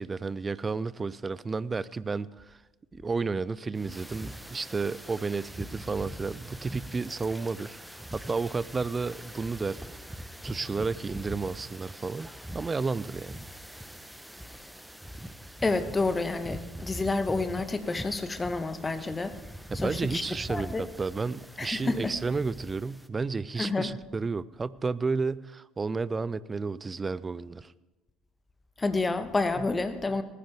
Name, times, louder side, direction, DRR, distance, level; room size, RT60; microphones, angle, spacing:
voice 1, 0.0-2.6 2.9-9.9 10.4-12.3 12.5-13.4 19.7-27.7, right 4 dB, 25° right, 20 dB, 0.5 m, -32 dB
sound 1, 3.7-23.1, equal, 5° right, 1.0 m, -43 dB
voice 2, 15.6-19.4 19.7-20.9 21.6-22.1 23.6-23.9 28.8-30.2, left 3 dB, 20° left, 10 dB, 1.2 m, -29 dB
19.0 x 14.5 x 3.5 m, 1.2 s
figure-of-eight pair, 60°, 0 cm